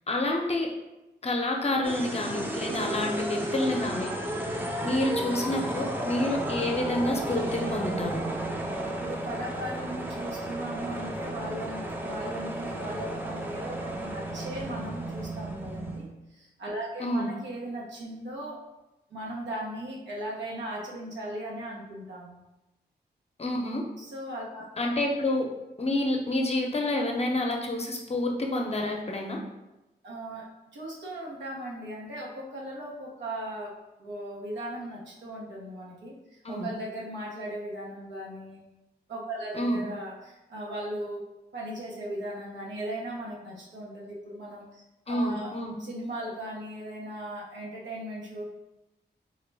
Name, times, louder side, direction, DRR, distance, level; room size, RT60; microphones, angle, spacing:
voice 1, 0.1-0.7 1.2-4.1 4.8-8.2 17.0-17.3 23.4-23.8 24.8-25.5 25.8-29.4 36.4-36.7 39.5-39.8 45.1-45.7, left 1 dB, 35° left, 1 dB, 0.6 m, -28 dB
sound 1, 1.8-16.1, right 1 dB, 10° right, 0.5 m, -33 dB
voice 2, 8.9-18.6 19.1-22.4 24.0-24.7 30.0-30.5 30.7-33.7 34.0-36.1 36.5-38.6 39.1-41.2 41.5-45.5 45.8-48.4, right 1 dB, 90° right, -4 dB, 0.9 m, -38 dB
3.7 x 2.1 x 3.3 m, 0.97 s
cardioid pair, 50°, 18 cm